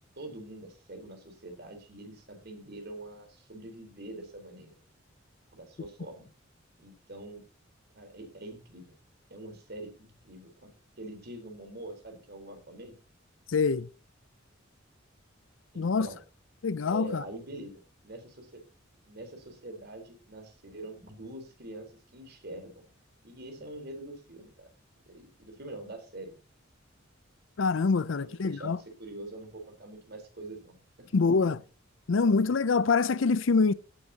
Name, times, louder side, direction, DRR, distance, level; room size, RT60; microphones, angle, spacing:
voice 1, 0.2-4.7 5.5-6.3 6.8-7.4 7.9-8.9 9.3-10.7 11.0-13.0 15.7-16.2 16.9-18.6 19.0-22.9 23.2-24.7 25.1-26.4 28.0-31.1 31.4-31.5, right 1 dB, 55° right, 4.0 m, -44 dB
voice 2, 13.5-13.9 15.8-16.1 16.6-17.2 27.6-28.8 31.1-31.6 32.1-33.7, left 4 dB, 70° left, 0.5 m, -25 dB
17.0 x 9.9 x 2.9 m
head